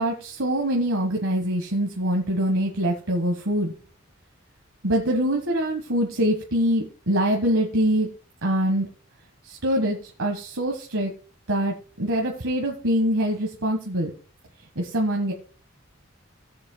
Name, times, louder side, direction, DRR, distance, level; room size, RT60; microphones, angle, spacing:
voice 1, 0.0-3.7 4.8-8.1 8.4-8.9 9.4-11.1 11.5-14.1 14.7-15.3, right 1 dB, 85° right, 0 dB, 1.5 m, -24 dB
18.5 x 7.4 x 2.2 m, 0.40 s
head